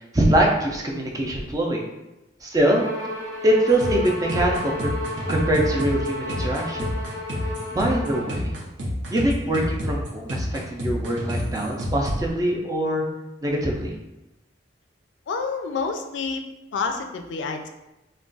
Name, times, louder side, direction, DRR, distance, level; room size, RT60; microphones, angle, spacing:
voice 1, 0.1-1.8 2.4-2.9 3.4-4.9 5.3-6.9 7.7-8.5 9.1-13.0 13.4-13.9, right 1 dB, 20° right, -1 dB, 0.4 m, -23 dB
Bowed string instrument, 2.6-8.4, left 1 dB, 15° left, 0.7 m, -32 dB
sound 1, 3.7-12.1, equal, 80° right, 0.7 m, -29 dB
voice 2, 15.3-16.4 16.7-17.7, left 4 dB, 80° left, 5 dB, 0.3 m, -28 dB
2.3 x 2.2 x 3.8 m, 0.97 s
head